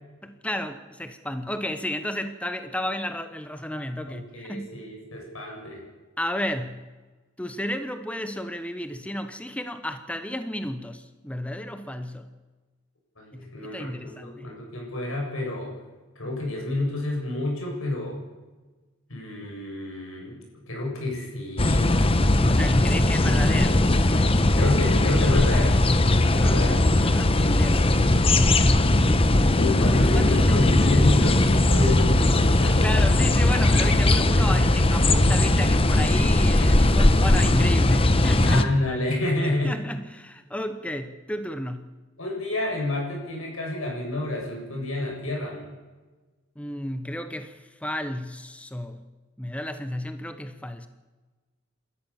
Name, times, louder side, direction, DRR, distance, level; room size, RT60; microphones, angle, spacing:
voice 1, 0.2-4.7 6.2-6.9 7.4-12.3 13.3-14.5 22.5-23.9 26.2-28.3 28.9-31.0 32.7-38.7 39.4-41.9 46.6-49.0 49.4-50.9, left 1 dB, 5° left, 9 dB, 0.9 m, -33 dB
voice 2, 4.1-5.8 13.2-15.7 16.2-18.2 19.1-20.4 20.7-21.9 24.5-25.8 26.4-26.9 29.5-33.0 38.5-39.7 42.2-45.7, left 2 dB, 85° left, 0 dB, 7.4 m, -29 dB
sound 1, 21.6-38.6, left 1 dB, 30° left, 1.0 m, -19 dB
28.5 x 13.5 x 7.2 m, 1.3 s
head